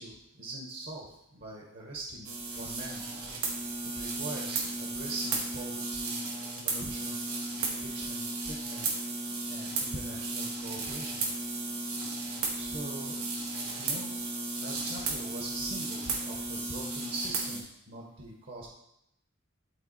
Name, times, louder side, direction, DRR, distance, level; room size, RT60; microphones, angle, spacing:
voice 1, 0.0-2.3 2.5-3.3 3.8-6.2 6.6-7.2 7.7-8.9 9.5-11.2 12.5-13.2 13.8-14.2 14.6-18.7, right 2 dB, 55° right, -2 dB, 1.6 m, -42 dB
sound 1, 2.2-17.6, right 3 dB, 80° right, 1.9 m, -34 dB
12.0 x 4.2 x 4.3 m, 0.78 s
head